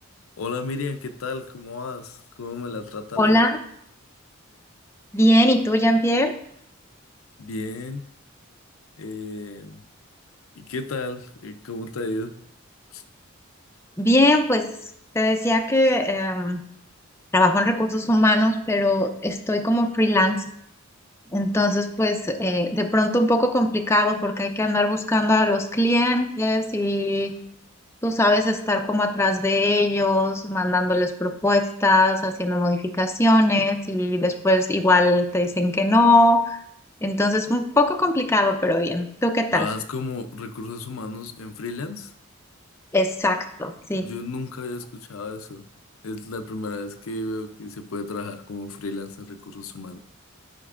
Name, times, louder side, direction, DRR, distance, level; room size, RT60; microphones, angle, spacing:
voice 1, 0.4-3.4 7.4-8.1 9.0-9.8 10.5-12.4 12.9-13.0 39.5-42.1 44.0-45.6 46.0-50.0, left 3 dB, 80° left, 7 dB, 0.5 m, -33 dB
voice 2, 3.2-3.6 5.1-6.3 14.0-14.7 15.1-16.6 17.3-20.4 21.3-27.3 28.0-36.6 37.0-39.7 42.9-44.1, left 1 dB, 15° left, 4 dB, 0.5 m, -20 dB
11.5 x 5.2 x 2.4 m, 0.71 s
head